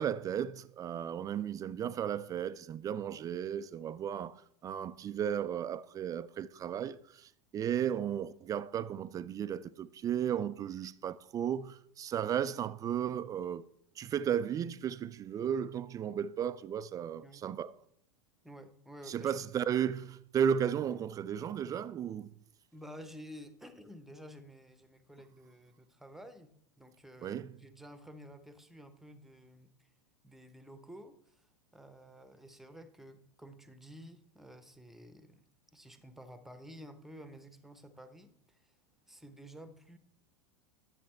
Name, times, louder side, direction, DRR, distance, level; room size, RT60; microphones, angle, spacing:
voice 1, 0.0-4.4 4.6-13.7 14.0-17.7 19.1-22.3 27.2-27.5, right 9 dB, 20° right, 0.4 m, -34 dB
voice 2, 18.4-19.5 22.7-29.9 30.2-31.4 31.7-35.4 35.7-38.6 39.1-40.0, equal, ahead, 0.9 m, -52 dB
10.5 x 7.3 x 4.4 m
figure-of-eight pair, 90°, 16 cm